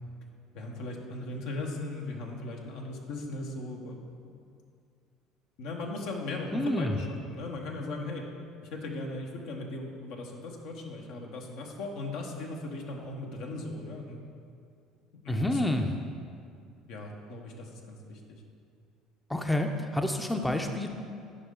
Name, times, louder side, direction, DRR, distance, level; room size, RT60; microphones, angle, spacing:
voice 1, 0.5-4.3 5.6-8.3 8.7-14.2 15.2-15.6 16.9-18.4, left 2 dB, 70° left, 0 dB, 1.0 m, -38 dB
voice 2, 6.5-6.9 15.3-16.0 19.3-20.9, left 1 dB, 10° left, 4 dB, 0.6 m, -28 dB
9.8 x 5.4 x 3.8 m, 2.4 s
hypercardioid pair, 65°, 0 cm